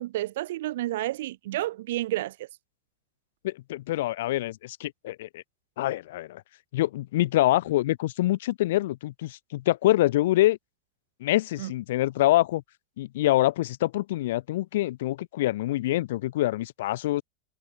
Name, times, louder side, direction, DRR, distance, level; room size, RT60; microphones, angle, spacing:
voice 1, 0.0-2.5 11.6-11.7, right 15 dB, 90° right, 3.3 m, -30 dB
voice 2, 3.4-5.4 5.8-6.4 6.7-10.6 11.2-12.6 13.0-17.2, left 16 dB, 85° left, 4.8 m, -25 dB
supercardioid pair, 175°, 0 cm